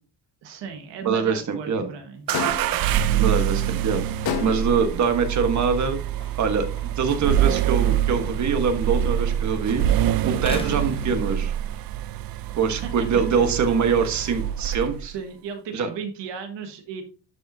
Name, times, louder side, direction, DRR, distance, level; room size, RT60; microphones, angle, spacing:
voice 1, 0.4-2.2 12.8-13.5 15.1-17.0, right 6 dB, 90° right, 5 dB, 1.5 m, -35 dB
voice 2, 1.0-1.9 3.2-4.1 4.4-6.0 6.4-9.8 10.2-11.5 12.5-15.1 15.7-15.9, right 5 dB, 40° right, 7 dB, 1.3 m, -24 dB
sound 1, 2.3-2.9 4.3-4.9, left 8 dB, 60° left, 1.2 m, -29 dB
sound 2, 2.3-15.1, right 11 dB, 60° right, 0.5 m, -25 dB
sound 3, 3.9-9.6 9.8-11.9 12.3-15.4, left 2 dB, 15° left, 0.8 m, -44 dB
11.0 x 5.6 x 2.7 m, 0.36 s
cardioid pair, 180°, 42 cm